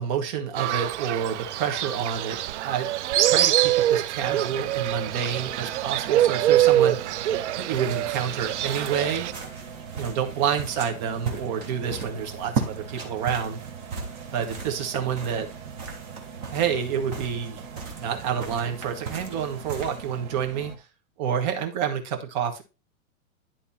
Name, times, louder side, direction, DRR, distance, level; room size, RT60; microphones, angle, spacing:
voice 1, 0.0-2.4 2.6-2.9 3.2-7.0 7.6-9.3 10.0-13.6 14.3-15.5 16.5-17.6 17.9-20.7 21.2-22.6, right 8 dB, 35° right, 4 dB, 1.3 m, -28 dB
Fowl, 0.6-9.3, right 13 dB, 60° right, 0.5 m, -24 dB
Engine, 4.3-20.8, right 7 dB, 90° right, 1.8 m, -42 dB
sound 1, 7.7-20.5, right 5 dB, 10° right, 0.5 m, -37 dB
10.5 x 3.7 x 4.1 m, 0.29 s
supercardioid pair, 170°, 41 cm